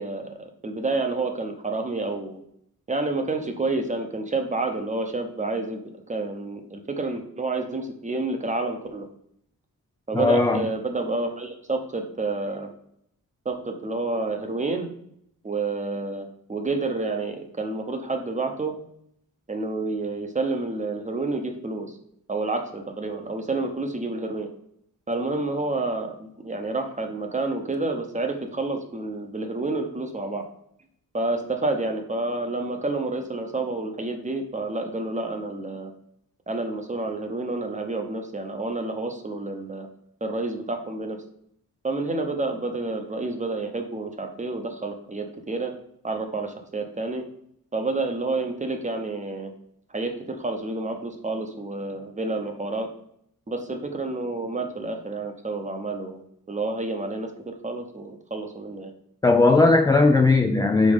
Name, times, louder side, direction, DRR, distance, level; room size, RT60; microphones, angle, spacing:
voice 1, 0.0-2.4 2.9-5.8 6.1-9.1 10.1-12.7 13.4-14.9 15.4-18.7 19.5-22.0 22.3-24.5 25.1-30.4 31.1-35.9 36.5-39.9 40.2-41.2 41.8-45.7 46.0-47.2 47.7-49.5 49.9-52.9 53.5-58.9, right 2 dB, 20° right, 5 dB, 0.8 m, -29 dB
voice 2, 10.1-10.6 59.2-60.9, left 3 dB, 10° left, 5 dB, 0.3 m, -18 dB
5.3 x 4.6 x 5.2 m, 0.70 s
wide cardioid pair, 165°, 36 cm